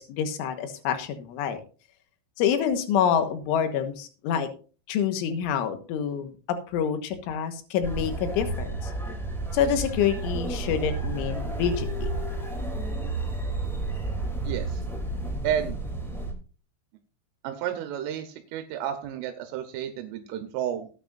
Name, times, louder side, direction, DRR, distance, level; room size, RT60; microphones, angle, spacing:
voice 1, 0.0-1.6 2.4-4.5 4.9-8.9 9.5-12.1, left 8 dB, 80° left, 8 dB, 3.7 m, -27 dB
sound 1, 7.8-16.3, right 2 dB, ahead, 1.0 m, -31 dB
voice 2, 14.4-14.8 15.4-15.8 17.4-20.9, right 10 dB, 85° right, 6 dB, 3.6 m, -31 dB
18.0 x 9.2 x 2.5 m, 0.37 s
omnidirectional pair, 5.6 m